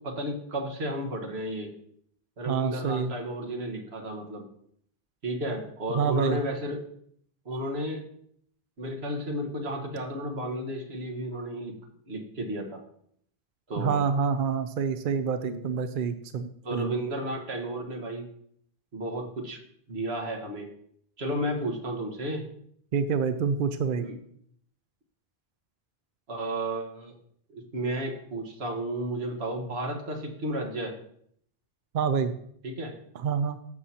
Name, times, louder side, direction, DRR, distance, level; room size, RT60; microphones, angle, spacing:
voice 1, 0.0-1.7 2.4-4.4 5.2-6.8 7.4-8.0 8.8-11.7 12.1-12.8 13.7-14.0 15.4-15.7 16.6-18.2 18.9-19.6 19.9-20.7 21.2-22.4 24.0-24.1 26.3-27.1 27.5-31.0 32.6-32.9, right 1 dB, 85° right, 2 dB, 1.7 m, -33 dB
voice 2, 2.5-3.1 5.9-6.4 13.8-16.9 22.9-24.0 31.9-32.3 33.1-33.6, right 6 dB, 60° right, 10 dB, 0.7 m, -27 dB
13.5 x 6.4 x 2.8 m, 0.67 s
omnidirectional pair, 1.0 m